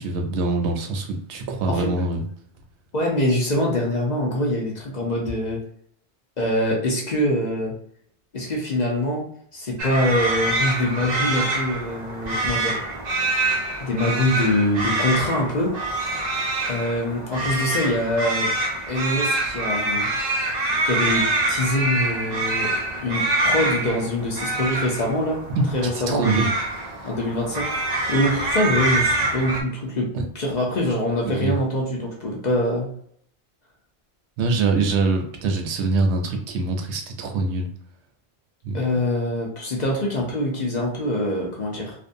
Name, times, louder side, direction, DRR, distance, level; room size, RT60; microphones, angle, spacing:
voice 1, 0.0-2.2 25.6-25.7 25.9-26.5 27.0-27.1 30.1-30.2 31.2-31.5 34.4-37.7 38.6-39.0, right 3 dB, 80° right, 4 dB, 0.9 m, -24 dB
voice 2, 2.9-5.6 6.4-7.7 8.3-9.2 9.5-12.8 13.8-15.8 16.7-18.5 18.9-20.1 20.8-22.7 23.0-25.4 25.7-26.5 27.0-32.9 38.7-41.9, left 1 dB, 45° left, -2 dB, 0.7 m, -24 dB
sound 1, 9.8-29.6, right 2 dB, 55° right, 0.5 m, -25 dB
2.5 x 2.1 x 2.6 m, 0.64 s
omnidirectional pair, 1.1 m